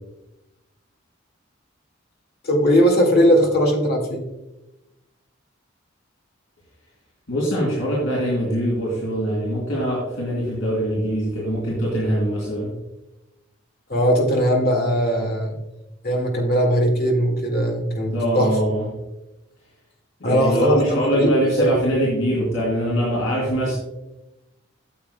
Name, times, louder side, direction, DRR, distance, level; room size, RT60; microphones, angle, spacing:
voice 1, 2.4-4.2 13.9-15.5 16.0-18.6 20.2-21.8, equal, 50° left, 1 dB, 2.0 m, -19 dB
voice 2, 7.3-12.7 18.1-18.9 20.2-23.8, equal, 75° left, -6 dB, 3.3 m, -23 dB
13.0 x 7.6 x 2.2 m, 0.96 s
head